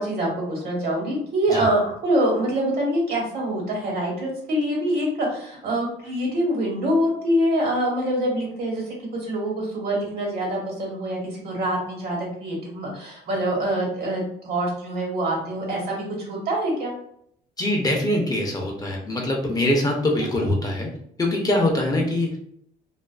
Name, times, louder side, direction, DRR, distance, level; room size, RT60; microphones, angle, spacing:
voice 1, 0.0-16.9 20.3-20.5, right 1 dB, 65° right, -2 dB, 1.2 m, -25 dB
voice 2, 17.6-20.9 21.2-22.4, left 1 dB, 20° left, 0 dB, 0.5 m, -23 dB
2.4 x 2.3 x 2.3 m, 0.68 s
cardioid pair, 110°, 17 cm